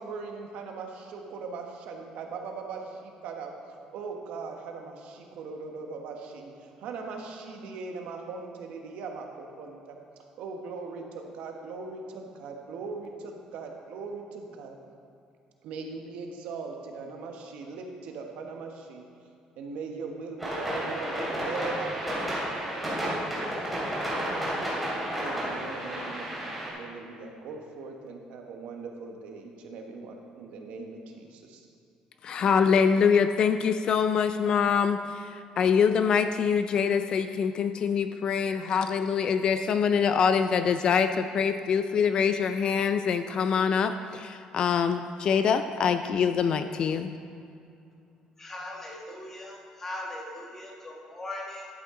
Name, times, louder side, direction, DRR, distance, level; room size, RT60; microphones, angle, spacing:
voice 1, 0.0-3.5 3.9-10.0 10.4-14.8 15.6-19.0 19.6-23.5 23.8-24.8 25.2-31.7, right 4 dB, 70° right, 2 dB, 1.2 m, -40 dB
sound 1, 20.4-26.7, equal, 5° right, 2.5 m, -31 dB
voice 2, 32.2-47.2, left 6 dB, 40° left, 9 dB, 0.3 m, -24 dB
voice 3, 48.4-51.7, left 1 dB, 15° left, -1 dB, 1.3 m, -39 dB
12.0 x 8.3 x 3.7 m, 2.5 s
cardioid pair, 165°, 2 cm